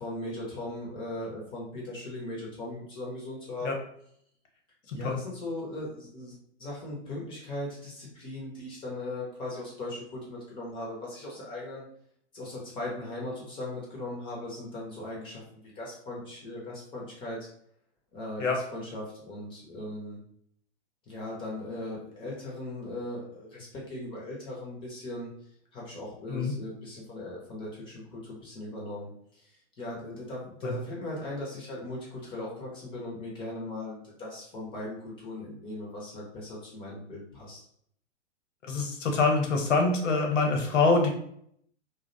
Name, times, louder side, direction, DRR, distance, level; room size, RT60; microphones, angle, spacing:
voice 1, 0.0-3.8 4.9-11.8 12.3-15.4 15.8-17.5 18.1-20.2 21.1-25.3 25.7-37.7, left 1 dB, 15° left, -4 dB, 0.4 m, -38 dB
voice 2, 4.9-5.2 18.4-18.6 26.3-26.5 30.6-30.7 38.6-41.1, left 3 dB, 80° left, 2 dB, 0.8 m, -25 dB
2.4 x 2.0 x 2.5 m, 0.68 s
hypercardioid pair, 115°, 36 cm